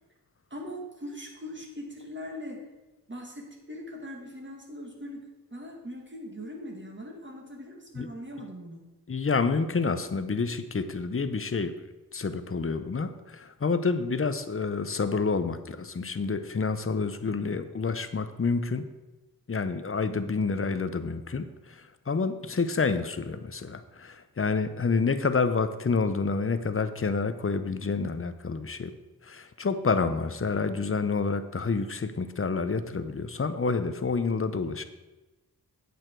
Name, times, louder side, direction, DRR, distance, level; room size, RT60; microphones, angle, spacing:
voice 1, 0.5-2.6 3.1-8.9 20.1-20.3 28.0-28.2, equal, 30° right, 0 dB, 2.0 m, -41 dB
voice 2, 9.1-18.9 19.5-28.9 29.2-34.8, left 4 dB, 35° left, 10 dB, 0.7 m, -28 dB
9.0 x 8.1 x 4.6 m, 1.1 s
wide cardioid pair, 95°, 38 cm